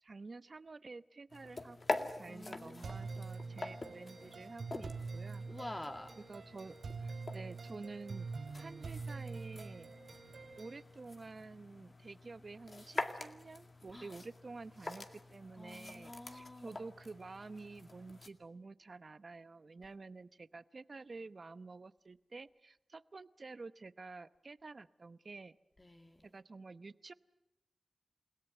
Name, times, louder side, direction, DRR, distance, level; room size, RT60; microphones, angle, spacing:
voice 1, 0.0-5.5 6.2-8.3 8.5-9.9 10.6-25.6 26.2-27.1, right 3 dB, 55° right, 14 dB, 0.8 m, -50 dB
sound 1, 1.3-18.3, left 2 dB, 50° left, 2.0 m, -46 dB
voice 2, 2.3-3.0 5.5-6.1 13.9-14.1 15.6-16.8 25.8-26.3, left 1 dB, 25° left, 5 dB, 2.0 m, -48 dB
sound 2, 2.8-10.8, right 4 dB, 90° right, 3.8 m, -45 dB
29.5 x 17.5 x 9.1 m, 0.93 s
wide cardioid pair, 65°, 0 cm